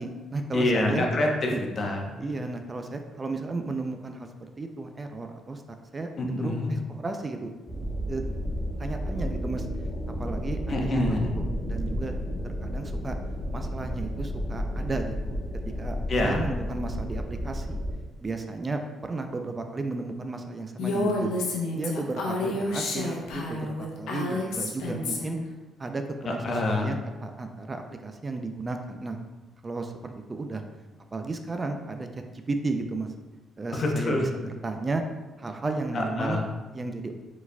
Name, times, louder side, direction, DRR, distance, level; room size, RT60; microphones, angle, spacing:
voice 1, 0.0-1.1 1.5-1.6 2.2-7.5 8.1-8.2 8.8-9.7 10.2-11.0 11.7-12.1 12.4-13.2 13.5-15.4 15.8-16.0 16.2-17.8 18.2-21.3 21.8-25.4 25.8-29.2 29.6-30.6 31.1-33.1 33.6-35.0 35.4-36.4 36.7-37.2, right 3 dB, 30° right, 5 dB, 0.4 m, -33 dB
voice 2, 0.5-2.0 6.2-6.7 10.7-11.4 16.1-16.4 26.3-27.0 33.7-34.2 35.9-36.5, left 2 dB, 50° left, 1 dB, 0.8 m, -26 dB
sound 1, 7.7-17.9, equal, 5° left, 1.0 m, -32 dB
Female speech woman speaking, 20.8-25.4, left 2 dB, 85° left, 0.7 m, -29 dB
4.7 x 4.0 x 2.2 m, 1.2 s
cardioid pair, 90°, 0 cm